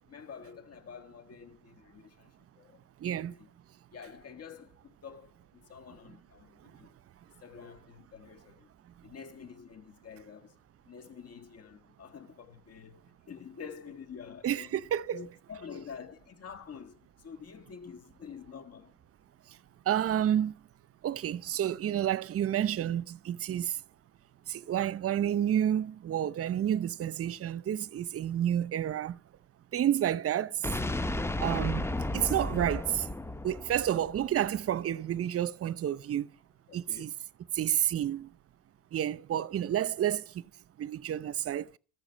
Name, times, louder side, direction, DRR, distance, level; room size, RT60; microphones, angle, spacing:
voice 1, 0.0-2.8 3.2-3.5 3.9-6.9 7.4-8.7 9.0-10.6 10.8-14.7 15.1-19.0 25.1-25.2 36.7-37.1, left 6 dB, 40° left, 1.8 m, -48 dB
voice 2, 3.0-3.4 6.6-6.7 14.4-15.2 19.5-19.6 19.9-20.6 21.0-23.8 24.5-29.2 29.7-30.7 31.4-33.1 33.4-36.3 36.7-37.1 37.5-38.3 38.9-40.4 40.8-41.8, right 10 dB, 35° right, 0.8 m, -30 dB
sound 1, 30.6-34.6, left 1 dB, 5° left, 0.7 m, -33 dB
14.0 x 6.2 x 8.3 m
hypercardioid pair, 75°, 38 cm